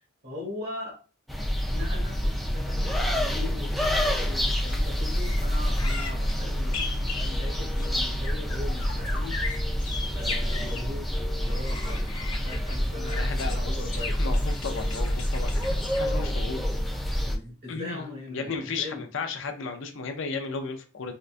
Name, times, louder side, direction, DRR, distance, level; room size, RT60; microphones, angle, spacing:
voice 1, 0.2-1.0 1.7-6.9 7.1-9.4 10.1-11.1 11.4-12.1 12.4-14.3 17.2-19.0, left 2 dB, 50° right, -2 dB, 1.4 m, -40 dB
sound 1, 1.3-17.4, equal, ahead, 0.4 m, -27 dB
sound 2, 4.6-10.1, equal, 80° right, 1.0 m, -40 dB
sound 3, 4.7-4.8 5.1-10.9 11.4-16.2, left 4 dB, 85° left, 0.8 m, -39 dB
voice 2, 13.1-13.8 14.2-16.7 16.9-17.0 17.7-18.0 18.3-21.1, left 4 dB, 60° left, 6 dB, 0.5 m, -34 dB
3.7 x 2.2 x 2.5 m, 0.35 s
head